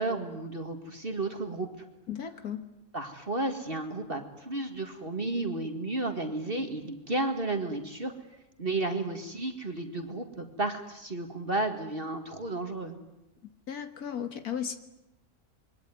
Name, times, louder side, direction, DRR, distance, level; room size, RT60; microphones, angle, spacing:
voice 1, 0.0-1.7 2.9-8.1 8.6-13.0, right 2 dB, 40° right, 5 dB, 2.2 m, -32 dB
voice 2, 2.1-2.6 13.7-14.8, left 8 dB, 80° left, 9 dB, 2.0 m, -35 dB
26.5 x 22.0 x 9.5 m, 0.88 s
omnidirectional pair, 1.6 m